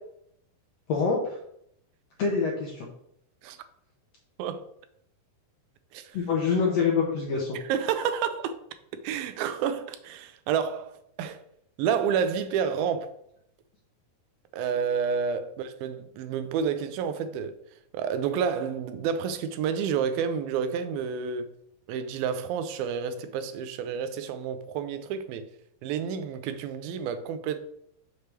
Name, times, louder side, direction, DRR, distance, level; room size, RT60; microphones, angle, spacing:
voice 1, 0.9-1.2 2.2-2.9 6.1-7.6, left 5 dB, 70° left, 1.5 m, -25 dB
voice 2, 7.7-8.6 8.9-11.4 11.8-13.1 14.5-17.5 17.9-21.5 21.9-25.4 25.8-27.6, right 7 dB, 85° right, 2.5 m, -29 dB
6.7 x 3.3 x 6.0 m
omnidirectional pair, 4.1 m